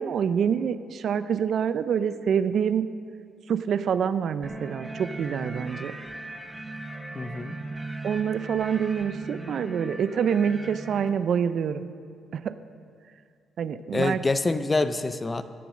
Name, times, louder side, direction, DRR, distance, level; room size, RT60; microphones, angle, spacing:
voice 1, 0.0-2.9 3.5-5.9 8.0-11.9 12.3-12.5 13.6-14.2, right 7 dB, 60° right, 13 dB, 0.5 m, -26 dB
sound 1, 4.4-11.1, right 2 dB, 10° right, 1.2 m, -38 dB
voice 2, 7.1-7.6 13.9-15.4, left 3 dB, 25° left, 11 dB, 0.6 m, -26 dB
15.5 x 7.0 x 6.3 m, 2.3 s
cardioid pair, 90°, 0 cm